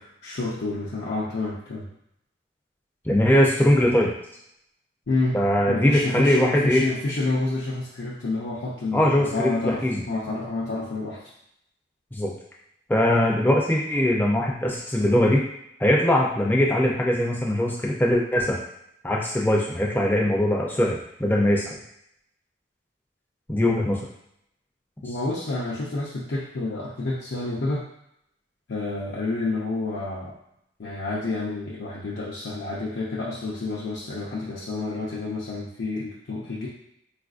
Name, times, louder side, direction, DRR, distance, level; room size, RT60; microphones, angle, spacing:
voice 1, 0.2-1.9 5.1-5.4 5.7-11.2 13.5-13.6 25.0-27.8 28.7-30.3 30.8-36.7, left 2 dB, 70° left, -6 dB, 0.6 m, -29 dB
voice 2, 3.1-4.1 5.3-6.8 8.9-10.0 12.1-12.3 12.9-15.4 15.8-18.6 19.0-21.8 23.5-24.0, left 1 dB, 10° left, -2 dB, 0.4 m, -21 dB
3.9 x 2.5 x 2.4 m, 0.75 s
head